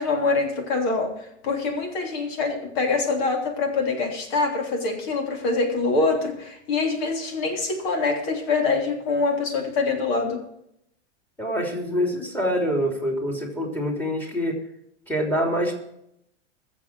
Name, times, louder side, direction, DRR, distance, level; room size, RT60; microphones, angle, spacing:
voice 1, 0.0-10.4, left 3 dB, 55° left, 3 dB, 3.4 m, -25 dB
voice 2, 11.4-14.6 15.1-15.7, equal, 5° left, 1 dB, 3.2 m, -25 dB
22.0 x 7.4 x 4.8 m, 0.78 s
hypercardioid pair, 125°, 36 cm